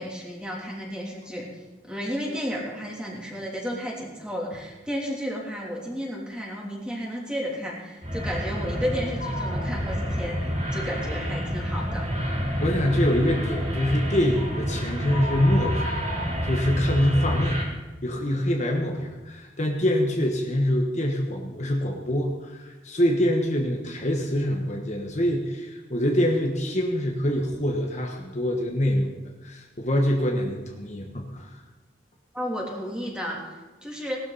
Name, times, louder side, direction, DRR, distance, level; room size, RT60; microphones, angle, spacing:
voice 1, 0.0-1.6 1.9-12.0 32.3-34.2, equal, 5° right, -3 dB, 3.2 m, -33 dB
sound 1, 8.0-17.6, equal, 35° right, 3.7 m, -29 dB
sound 2, 9.2-9.8 10.3-10.4 14.3-14.6 15.1-17.0, left 1 dB, 55° left, 2.5 m, -36 dB
voice 2, 12.6-16.0 16.4-17.6 18.0-29.1 29.4-31.6, equal, 40° left, 1 dB, 1.4 m, -25 dB
18.5 x 12.5 x 4.2 m, 1.2 s
head